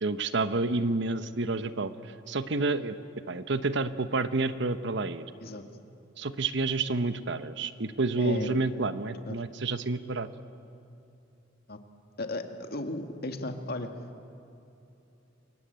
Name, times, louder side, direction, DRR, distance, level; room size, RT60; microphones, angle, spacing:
voice 1, 0.0-3.0 3.3-5.2 6.2-10.3, right 3 dB, 65° right, 12 dB, 1.1 m, -29 dB
voice 2, 8.2-8.5 9.3-9.4 11.7-11.8 12.2-13.9, left 2 dB, 55° left, 6 dB, 2.0 m, -35 dB
27.5 x 23.0 x 9.0 m, 2.8 s
head